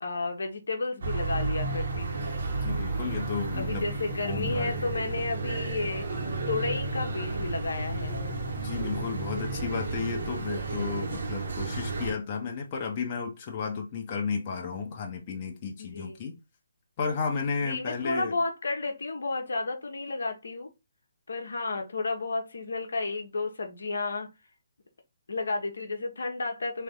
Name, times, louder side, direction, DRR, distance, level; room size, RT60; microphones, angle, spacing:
voice 1, 0.0-2.3 3.5-6.1 6.5-8.2 15.8-16.2 17.6-20.7 21.3-24.3 25.3-26.8, left 3 dB, 70° left, 1.2 m, -32 dB
sound 1, 1.0-12.1, right 3 dB, 60° right, 1.6 m, -32 dB
voice 2, 2.6-3.9 4.2-4.9 8.6-16.3 17.0-18.3, left 5 dB, 35° left, 1.0 m, -33 dB
4.0 x 3.4 x 3.7 m
figure-of-eight pair, 140°, 0 cm